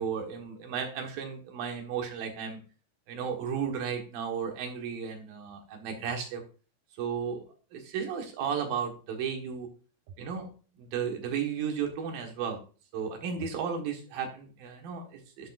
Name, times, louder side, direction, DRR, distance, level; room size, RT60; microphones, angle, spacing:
voice 1, 0.0-2.6 3.1-6.4 7.0-7.4 7.7-9.7 10.2-10.5 10.8-12.6 12.9-15.5, right 7 dB, 65° right, 4 dB, 2.8 m, -34 dB
12.5 x 6.4 x 2.5 m, 0.36 s
omnidirectional pair, 5.1 m